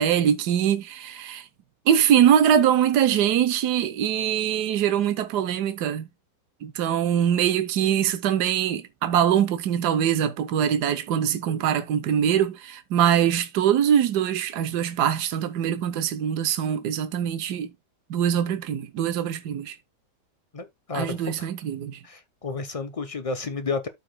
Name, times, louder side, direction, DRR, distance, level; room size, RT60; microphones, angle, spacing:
voice 1, 0.0-1.5 1.9-6.1 6.6-17.7 18.1-19.8 20.9-22.0, right 9 dB, 80° right, 1.4 m, -23 dB
voice 2, 20.5-21.5 22.0-23.9, left 4 dB, 35° left, 0.6 m, -31 dB
13.0 x 4.8 x 2.2 m
omnidirectional pair, 1.7 m